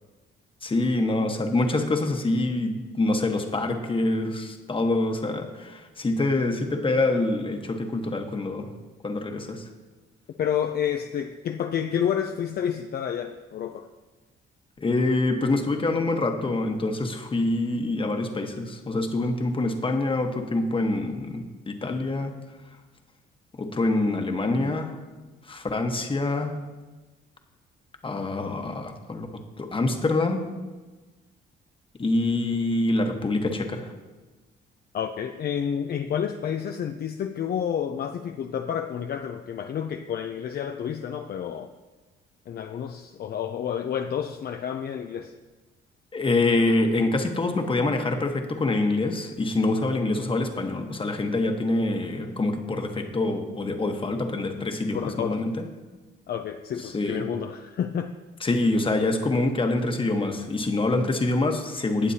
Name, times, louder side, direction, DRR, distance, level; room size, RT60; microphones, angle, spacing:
voice 1, 0.6-8.7 9.0-9.7 14.8-22.3 23.6-25.0 25.5-26.6 28.0-30.4 32.0-33.9 46.1-55.6 56.8-57.2 58.4-62.1, left 2 dB, 25° left, 5 dB, 1.2 m, -25 dB
voice 2, 10.4-13.9 34.9-41.7 42.5-45.3 54.9-55.3 56.3-58.1, left 8 dB, 50° left, 6 dB, 0.5 m, -29 dB
18.0 x 7.3 x 2.8 m, 1.2 s
cardioid pair, 90°, 20 cm